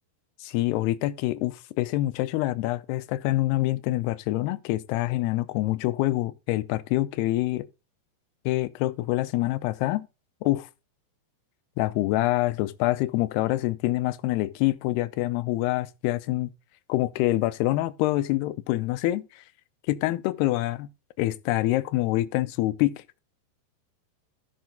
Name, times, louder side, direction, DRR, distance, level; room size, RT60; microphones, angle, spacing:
voice 1, 0.4-7.7 8.5-10.1 10.4-10.7 11.8-16.5 16.9-19.4 19.9-20.9 21.2-23.2, left 17 dB, 80° left, 2.6 m, -26 dB
14.5 x 6.1 x 3.8 m
omnidirectional pair, 4.8 m